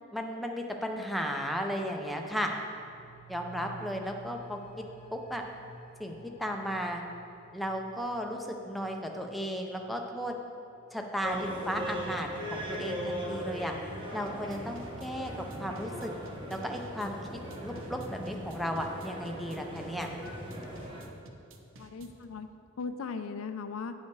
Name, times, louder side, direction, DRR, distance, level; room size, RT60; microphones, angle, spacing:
voice 1, 0.1-2.5 3.3-4.6 5.1-5.4 6.0-7.0 7.5-10.4 10.9-13.7 14.1-15.3 15.6-16.1 16.5-17.2 17.6-20.1, equal, ahead, 2 dB, 0.5 m, -35 dB
sound 1, 2.7-11.6 12.0-12.1, right 1 dB, 25° left, 1.0 m, -53 dB
sound 2, 11.2-21.0, equal, 25° right, 1.1 m, -39 dB
sound 3, 14.3-22.2, right 2 dB, 65° right, 0.7 m, -53 dB
voice 2, 21.6-23.9, left 5 dB, 80° left, 9 dB, 0.5 m, -39 dB
9.2 x 5.5 x 4.6 m, 2.6 s
head